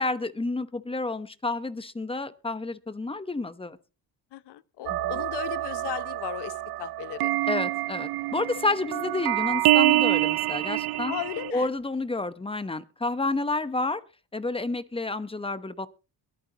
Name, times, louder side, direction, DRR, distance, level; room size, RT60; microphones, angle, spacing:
voice 1, 0.0-3.8 4.9-5.0 7.5-11.1 11.5-14.0 14.3-15.9, left 3 dB, 15° left, 0.9 m, -30 dB
voice 2, 4.3-7.4 11.1-11.7, left 14 dB, 70° left, 0.9 m, -36 dB
sound 1, 4.9-11.5, right 17 dB, 65° right, 0.6 m, -26 dB
23.0 x 9.2 x 2.9 m
cardioid pair, 105°, 41 cm